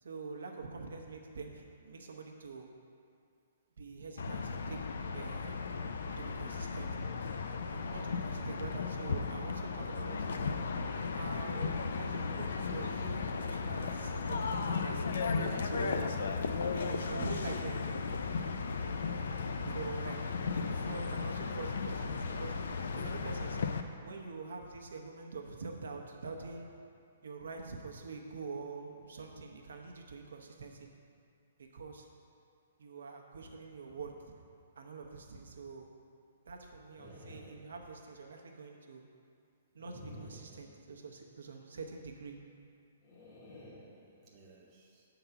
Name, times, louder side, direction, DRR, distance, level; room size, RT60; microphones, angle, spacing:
voice 1, 0.0-2.7 3.8-4.8 5.1-5.6 6.2-6.9 7.7-10.3 11.1-15.0 15.7-16.1 16.6-18.0 19.6-22.5 22.9-23.6 24.0-26.7 27.2-30.9 31.7-32.1 32.8-34.1 34.8-35.9 36.5-39.0 39.7-42.4, right 4 dB, 85° right, 2 dB, 0.8 m, -45 dB
sound 1, 4.2-23.8, left 4 dB, 65° left, 0.4 m, -35 dB
voice 2, 15.3-16.5 44.2-45.0, right 1 dB, 20° right, -4 dB, 0.7 m, -49 dB
sound 2, 37.0-38.3 39.8-41.3 43.0-44.6, equal, 25° left, 1.1 m, -53 dB
6.8 x 3.9 x 5.9 m, 2.4 s
hypercardioid pair, 175°, 0 cm